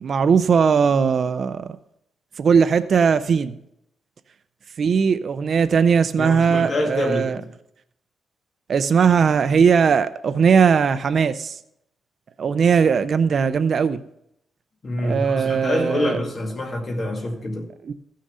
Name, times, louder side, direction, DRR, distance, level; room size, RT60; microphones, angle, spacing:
voice 1, 0.0-1.7 2.4-3.6 4.8-7.4 8.7-11.6 12.4-14.0 15.0-16.2 17.8-17.9, right 6 dB, 45° right, 0.5 m, -19 dB
voice 2, 6.2-7.5 14.8-17.7, left 1 dB, 35° left, 2.1 m, -26 dB
15.0 x 6.4 x 5.4 m
wide cardioid pair, 165°, 0 cm